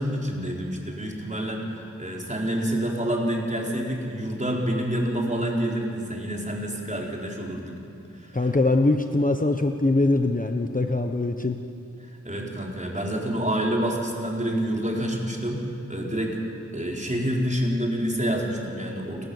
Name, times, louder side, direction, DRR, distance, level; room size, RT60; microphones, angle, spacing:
voice 1, 0.0-7.8 8.1-8.4 12.2-15.6 15.9-16.4 16.7-19.3, equal, 25° right, -2 dB, 4.6 m, -28 dB
voice 2, 8.3-11.6, left 2 dB, 25° left, 5 dB, 1.1 m, -22 dB
30.0 x 14.0 x 7.2 m, 2.6 s
wide cardioid pair, 45°, 30 cm